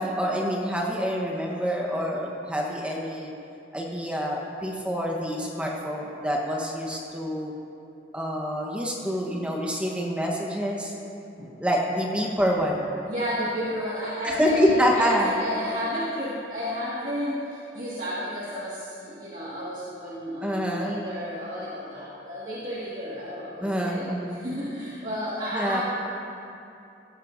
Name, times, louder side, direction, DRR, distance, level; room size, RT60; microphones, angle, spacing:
voice 1, 0.0-3.3 3.7-7.5 8.1-10.9 11.6-12.9 14.2-15.3 20.4-21.0 23.6-24.4 25.5-25.8, equal, 5° right, -2 dB, 1.0 m, -26 dB
voice 2, 13.1-25.8, equal, 45° right, -9 dB, 1.9 m, -32 dB
16.0 x 14.5 x 2.6 m, 2.8 s
head